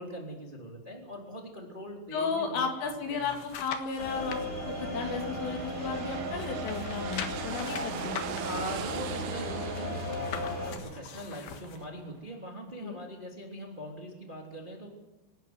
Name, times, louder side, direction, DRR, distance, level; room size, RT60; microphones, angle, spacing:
voice 1, 0.0-3.3 8.4-14.9, right 1 dB, 15° right, 0 dB, 2.5 m, -42 dB
voice 2, 2.1-4.4 4.7-8.2 12.8-13.0, left 5 dB, 90° left, 3 dB, 5.4 m, -34 dB
sound 1, 2.9-4.5 4.9-6.1 6.3-11.9 12.3-12.4, left 8 dB, 65° left, 3.1 m, -43 dB
sound 2, 4.0-10.7, left 1 dB, 20° left, 2.2 m, -36 dB
sound 3, 4.6-12.3, right 13 dB, 85° right, 3.5 m, -42 dB
25.0 x 13.0 x 9.7 m, 1.1 s
omnidirectional pair, 5.6 m